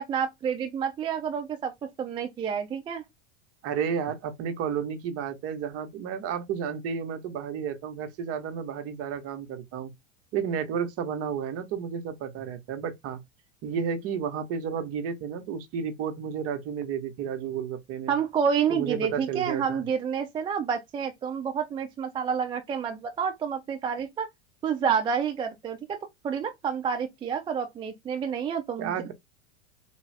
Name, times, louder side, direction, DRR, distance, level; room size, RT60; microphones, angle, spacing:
voice 1, 0.0-1.7 2.0-3.0 18.1-24.3 24.6-26.0 26.2-29.1, right 7 dB, 15° right, 0.3 m, -29 dB
voice 2, 3.6-9.9 10.3-13.2 13.6-18.2 18.7-19.9 28.8-29.1, right 7 dB, 40° right, 0.9 m, -32 dB
3.5 x 2.3 x 3.2 m
hypercardioid pair, 110°, 35 cm